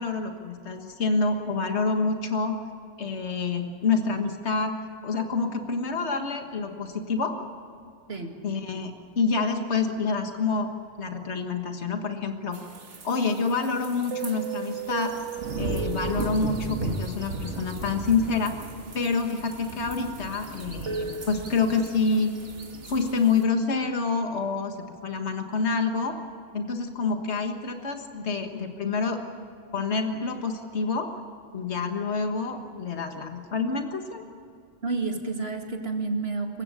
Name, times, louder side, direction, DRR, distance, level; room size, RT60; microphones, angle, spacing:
voice 1, 0.0-2.6 3.0-4.8 5.0-7.4 8.4-10.7 11.0-12.6 13.0-15.2 15.6-18.5 18.9-22.3 22.8-24.8 25.0-26.2 26.5-29.2 29.7-31.1 31.5-34.2, left 4 dB, 70° left, 5 dB, 1.9 m, -27 dB
sound 1, 12.5-23.4, right 4 dB, 85° right, 2.0 m, -35 dB
voice 2, 34.8-36.6, right 3 dB, 60° right, 4 dB, 2.5 m, -30 dB
26.5 x 15.5 x 9.8 m, 2.4 s
omnidirectional pair, 1.2 m